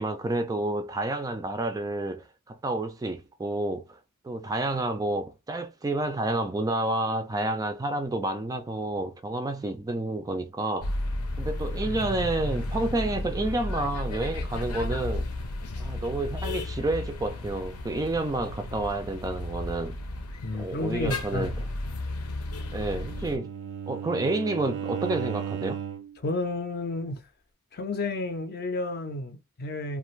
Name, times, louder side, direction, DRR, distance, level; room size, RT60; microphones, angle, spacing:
voice 1, 0.0-4.0 4.2-10.9 11.4-15.3 15.8-20.0 20.6-21.5 22.7-23.5 23.9-25.8, right 2 dB, 15° right, 0.3 m, -29 dB
sound 1, 10.8-23.4, left 2 dB, 85° left, 0.7 m, -33 dB
voice 2, 20.4-21.5 26.2-27.2 27.7-30.0, left 2 dB, 45° left, 0.5 m, -31 dB
Bowed string instrument, 22.5-26.2, right 8 dB, 75° right, 0.5 m, -35 dB
2.4 x 2.4 x 3.1 m
head